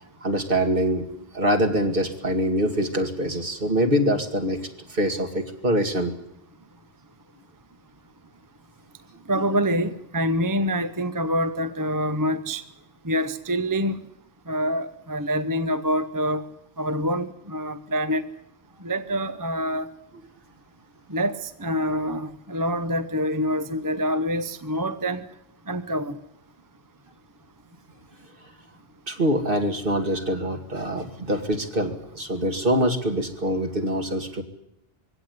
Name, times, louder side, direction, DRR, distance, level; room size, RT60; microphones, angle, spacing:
voice 1, 0.2-1.1 1.3-6.2 29.1-34.4, equal, 55° right, 5 dB, 2.5 m, -24 dB
voice 2, 9.3-12.6 13.0-14.1 14.5-16.4 16.8-18.3 18.8-19.9 21.1-25.3 25.7-26.2, equal, 20° right, 11 dB, 0.8 m, -26 dB
23.0 x 17.0 x 9.5 m, 0.82 s
omnidirectional pair, 1.1 m